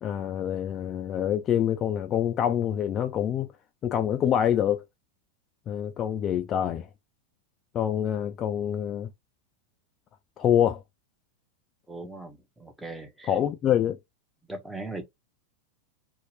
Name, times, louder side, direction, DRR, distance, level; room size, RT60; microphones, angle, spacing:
voice 1, 0.0-3.5 3.8-4.8 5.7-6.9 7.7-9.1 10.4-10.8 13.3-14.0, left 10 dB, 30° left, 0.3 m, -26 dB
voice 2, 11.9-13.3 14.5-15.1, right 2 dB, 5° right, 0.6 m, -39 dB
2.7 x 2.1 x 3.1 m
figure-of-eight pair, 90°, 0 cm